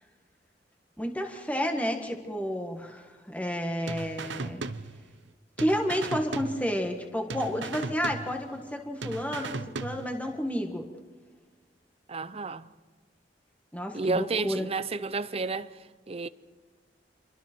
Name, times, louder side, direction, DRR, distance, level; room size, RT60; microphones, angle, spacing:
voice 1, 1.0-4.6 5.6-10.9 13.7-14.7, equal, 10° left, 1.6 m, -31 dB
sound 1, 3.9-5.3 5.6-7.0 7.3-8.7 9.0-10.3, right 3 dB, 90° right, 0.9 m, -37 dB
voice 2, 12.1-12.7 13.9-15.8 16.1-16.3, right 3 dB, 35° right, 0.7 m, -31 dB
28.0 x 24.0 x 4.5 m
head